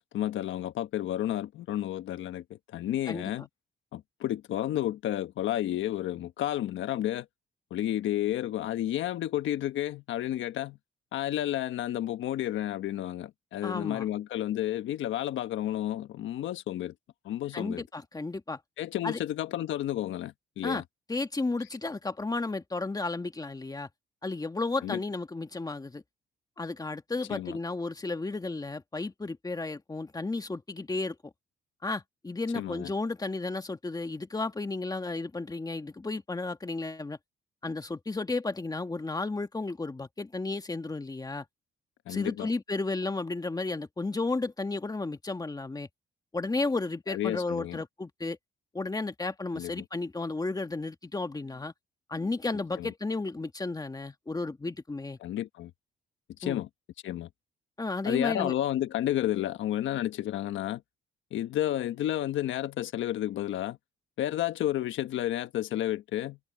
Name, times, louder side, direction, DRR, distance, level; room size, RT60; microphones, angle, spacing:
voice 1, 0.0-3.5 3.9-7.3 7.7-10.8 11.1-16.9 17.2-17.8 18.8-20.8 24.8-25.0 27.3-27.6 32.5-32.9 42.1-42.5 47.1-47.8 49.5-49.8 52.8-52.9 55.2-55.7 56.4-56.7 57.0-57.3 58.0-60.8 61.3-63.8 64.2-66.4, left 13 dB, 80° left, 1.3 m, -31 dB
voice 2, 13.6-14.1 17.5-18.6 19.0-19.2 20.6-20.8 21.1-23.9 24.2-26.0 26.6-31.2 31.8-37.2 37.6-41.5 42.1-45.9 46.3-48.4 48.7-51.7 52.1-55.2 56.4-56.6 57.8-58.5, left 3 dB, 20° left, 1.8 m, -33 dB
open air
cardioid pair, 90°, 20 cm